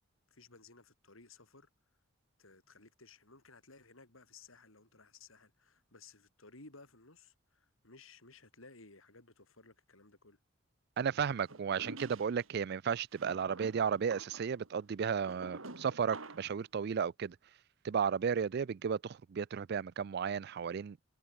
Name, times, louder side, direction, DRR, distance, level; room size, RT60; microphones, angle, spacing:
voice 1, 0.3-1.7 2.4-10.4, left 3 dB, 80° left, 4.8 m, -58 dB
voice 2, 11.0-17.4 17.8-21.0, right 7 dB, 50° right, 0.4 m, -34 dB
sound 1, 11.5-12.5 13.1-16.6, right 2 dB, 75° right, 3.3 m, -49 dB
head